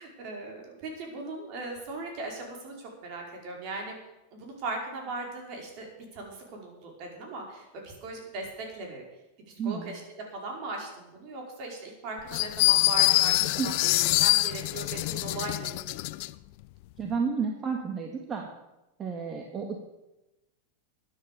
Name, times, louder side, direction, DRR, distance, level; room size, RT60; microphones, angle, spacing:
voice 1, 0.0-4.0 4.3-9.0 9.5-16.0, right 2 dB, 50° right, 1 dB, 5.0 m, -39 dB
voice 2, 9.6-9.9 13.4-13.7 17.0-18.5 19.0-19.8, right 5 dB, 30° right, 3 dB, 1.9 m, -31 dB
sound 1, 12.3-16.3, left 20 dB, 55° left, 0.5 m, -24 dB
12.5 x 10.0 x 6.9 m, 0.98 s
hypercardioid pair, 100°, 0 cm